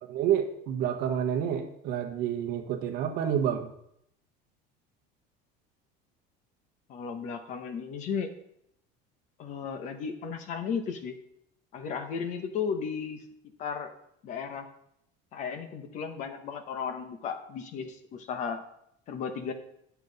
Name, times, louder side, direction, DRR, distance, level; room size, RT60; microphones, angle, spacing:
voice 1, 0.0-3.7, right 9 dB, 45° right, 4 dB, 1.0 m, -29 dB
voice 2, 6.9-8.3 9.4-11.1 11.7-13.2 13.6-13.9 14.2-14.7 15.3-18.6 19.1-19.5, left 6 dB, 35° left, 8 dB, 0.9 m, -34 dB
10.5 x 6.9 x 4.0 m, 0.74 s
cardioid pair, 180°, 20 cm